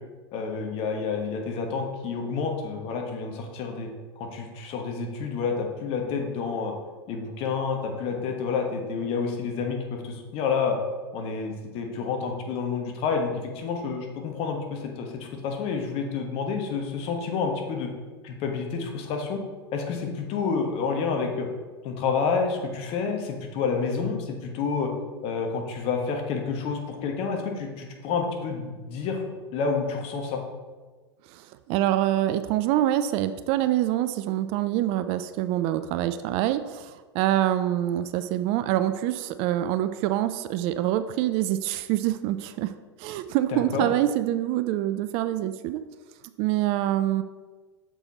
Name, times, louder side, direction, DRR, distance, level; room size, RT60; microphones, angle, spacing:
voice 1, 0.3-3.9 4.2-6.7 7.1-10.8 11.1-17.9 18.2-19.4 19.7-21.5 21.8-24.9 25.2-29.2 29.5-30.4 43.5-43.9, left 5 dB, 45° left, 3 dB, 1.2 m, -29 dB
voice 2, 31.3-42.7 43.0-45.8 46.4-47.2, right 13 dB, 45° right, 11 dB, 0.4 m, -25 dB
6.8 x 4.6 x 4.1 m, 1.3 s
hypercardioid pair, 90°, 13 cm